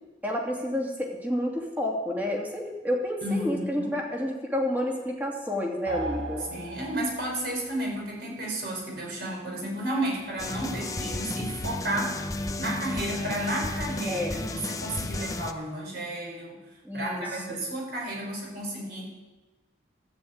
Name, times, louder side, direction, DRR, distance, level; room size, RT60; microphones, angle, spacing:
voice 1, 0.2-6.5 14.1-14.4 16.8-17.6, left 1 dB, 10° right, -1 dB, 2.5 m, -30 dB
voice 2, 3.2-4.0 6.5-12.2 12.6-16.7 16.9-19.1, right 1 dB, 55° right, -1 dB, 5.3 m, -32 dB
sound 1, 5.9-7.4, right 2 dB, 80° right, 1.5 m, -36 dB
sound 2, 10.4-15.5, left 2 dB, 20° left, 0.6 m, -33 dB
12.5 x 10.5 x 8.7 m, 1.2 s
head